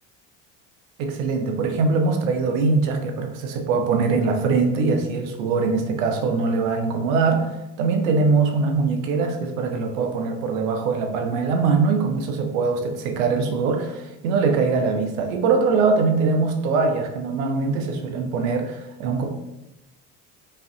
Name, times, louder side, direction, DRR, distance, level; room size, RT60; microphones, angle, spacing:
voice 1, 1.0-7.5 7.8-19.2, right 4 dB, 90° right, 3 dB, 0.8 m, -22 dB
5.4 x 2.6 x 2.7 m, 0.95 s
supercardioid pair, 100°, 38 cm